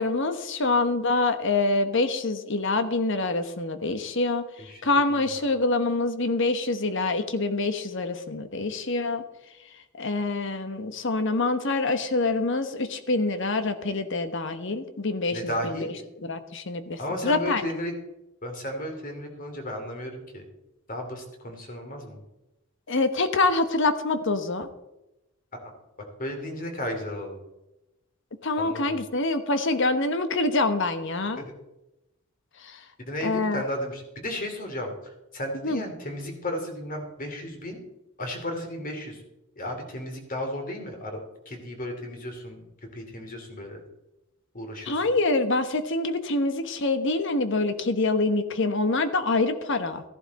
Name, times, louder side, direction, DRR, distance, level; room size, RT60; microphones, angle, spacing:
voice 1, 0.0-4.4 4.8-9.2 10.0-15.9 16.2-17.6 22.9-24.7 28.4-31.4 32.6-32.8 33.2-33.6 35.6-35.8 44.9-50.0, left 3 dB, 65° left, 9 dB, 1.2 m, -25 dB
voice 2, 4.7-5.3 15.3-15.9 17.0-17.9 18.4-20.5 20.9-22.2 26.2-27.4 28.6-29.0 31.4-31.5 33.0-37.8 38.2-39.2 39.6-41.2 41.4-42.6 42.9-43.8 44.5-45.0, left 1 dB, 45° left, 3 dB, 2.9 m, -34 dB
14.5 x 11.0 x 4.2 m, 0.93 s
head